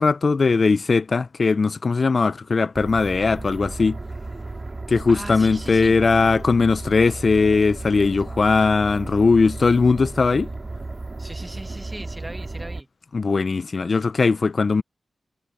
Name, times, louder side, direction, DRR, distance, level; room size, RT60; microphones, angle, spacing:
voice 1, 0.0-4.0 4.9-10.5 13.1-14.8, left 4 dB, 50° left, 0.3 m, -19 dB
sound 1, 2.7-12.8, right 2 dB, 30° right, 4.0 m, -34 dB
voice 2, 5.1-6.0 11.2-12.9, right 1 dB, 15° right, 1.3 m, -38 dB
wide cardioid pair, 110°, 0 cm